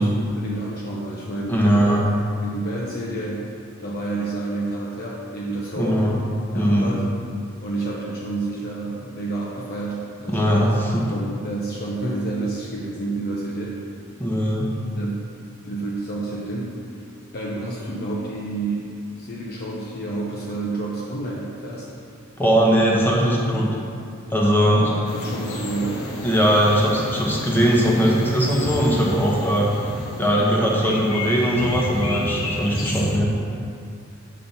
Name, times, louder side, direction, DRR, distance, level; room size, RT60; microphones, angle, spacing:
voice 1, 0.0-2.0 2.4-3.5 3.8-6.1 6.5-7.1 7.6-10.8 11.1-13.8 14.9-15.2 15.6-17.0 17.3-21.8 24.6-26.0 32.8-33.1, right 2 dB, 45° left, -4 dB, 0.7 m, -29 dB
voice 2, 1.5-2.0 5.8-6.2 6.5-6.9 10.3-11.0 14.2-14.7 22.4-23.7 24.3-24.8 26.2-29.7 30.2-33.3, equal, 10° left, -3 dB, 1.0 m, -19 dB
sound 1, 25.1-33.2, left 1 dB, 85° left, 0.9 m, -31 dB
7.2 x 4.3 x 5.4 m, 2.5 s
head